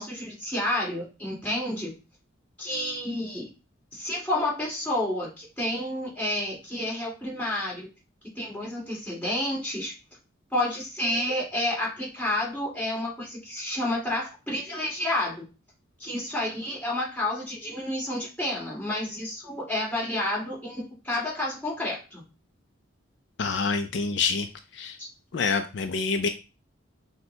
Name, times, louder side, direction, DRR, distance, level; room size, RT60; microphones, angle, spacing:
voice 1, 0.0-1.9 2.6-3.5 3.9-7.9 8.4-9.9 10.5-15.4 16.0-22.2 25.0-25.1, left 1 dB, 5° left, -5 dB, 2.2 m, -30 dB
voice 2, 23.4-24.5 24.7-25.0 25.3-26.3, left 4 dB, 60° left, 7 dB, 0.4 m, -26 dB
6.1 x 2.2 x 3.8 m, 0.31 s
head